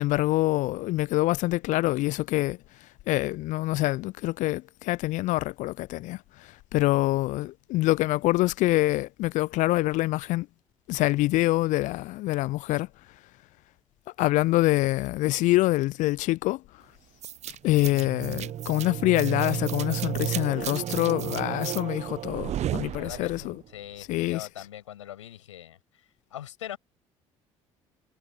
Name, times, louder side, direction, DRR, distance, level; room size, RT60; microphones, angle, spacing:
voice 1, 0.0-2.6 3.1-6.2 6.7-10.5 10.9-12.9 14.2-16.6 17.6-23.5 24.1-24.5, left 18 dB, 55° left, 0.4 m, -25 dB
sound 1, 17.2-23.6, right 11 dB, 45° right, 0.8 m, -32 dB
voice 2, 23.0-26.8, left 11 dB, 80° left, 7.5 m, -42 dB
figure-of-eight pair, 55°, 16 cm